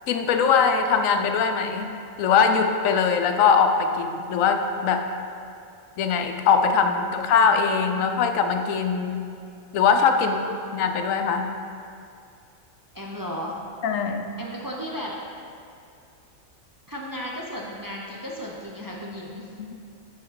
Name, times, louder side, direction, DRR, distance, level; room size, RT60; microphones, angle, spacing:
voice 1, 0.1-1.9 2.2-5.0 6.0-9.2 9.7-10.4 10.7-11.5 13.8-14.3 19.6-19.7, left 6 dB, 80° left, 5 dB, 1.0 m, -21 dB
voice 2, 12.9-13.6 14.4-15.1 16.9-19.5, equal, 30° right, -3 dB, 0.4 m, -35 dB
9.5 x 5.1 x 3.9 m, 2.5 s
omnidirectional pair, 1.4 m